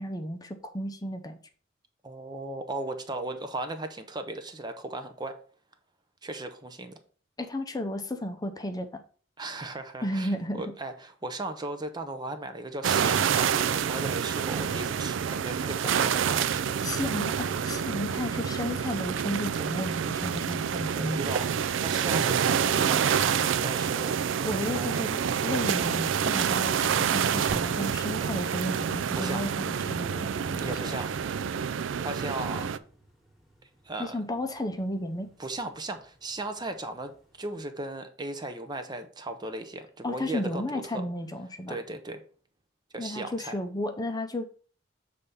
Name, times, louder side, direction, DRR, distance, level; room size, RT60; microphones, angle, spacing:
voice 1, 0.0-1.4 7.4-9.0 10.0-10.6 16.8-21.5 24.4-30.9 34.0-35.3 40.0-41.8 43.0-44.4, left 1 dB, 20° left, 0.6 m, -33 dB
voice 2, 2.0-5.4 6.2-7.0 9.4-16.7 20.9-21.5 21.8-25.1 29.1-29.4 30.6-31.1 32.0-32.7 33.8-34.2 35.4-37.1 37.4-41.0 41.7-42.2 42.9-43.5, right 2 dB, 20° right, 0.6 m, -37 dB
sound 1, 12.8-32.8, right 7 dB, 70° right, 0.4 m, -28 dB
sound 2, 27.5-37.7, right 1 dB, ahead, 1.4 m, -52 dB
6.9 x 3.4 x 5.4 m
head